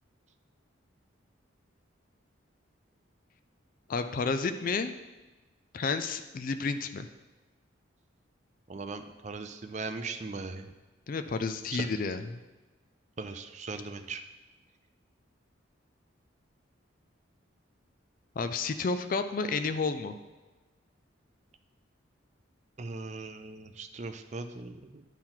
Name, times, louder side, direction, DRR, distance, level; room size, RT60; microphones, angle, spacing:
voice 1, 3.9-4.9 5.7-7.1 11.1-12.4 18.4-20.1, left 4 dB, 45° left, 9 dB, 0.3 m, -31 dB
voice 2, 8.7-10.7 11.7-11.9 13.2-14.2 22.8-25.0, right 3 dB, 35° right, 8 dB, 0.4 m, -39 dB
10.0 x 4.5 x 3.8 m, 1.2 s
head